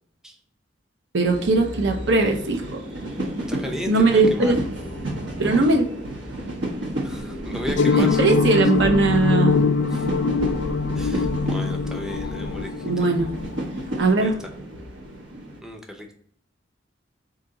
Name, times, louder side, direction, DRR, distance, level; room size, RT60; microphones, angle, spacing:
voice 1, 1.1-2.8 3.9-4.6 5.4-5.9 8.0-9.6 12.8-13.4 14.0-14.4, right 3 dB, 70° right, 3 dB, 0.6 m, -20 dB
sound 1, 1.3-15.6, right 1 dB, 85° right, 1.0 m, -31 dB
voice 2, 3.5-4.5 7.0-8.6 9.9-10.1 11.0-13.1 14.2-14.5 15.6-16.1, left 1 dB, 5° right, 2 dB, 0.5 m, -35 dB
sound 2, 7.8-14.0, left 4 dB, 75° left, 0.3 m, -23 dB
3.9 x 2.8 x 3.7 m, 0.62 s
head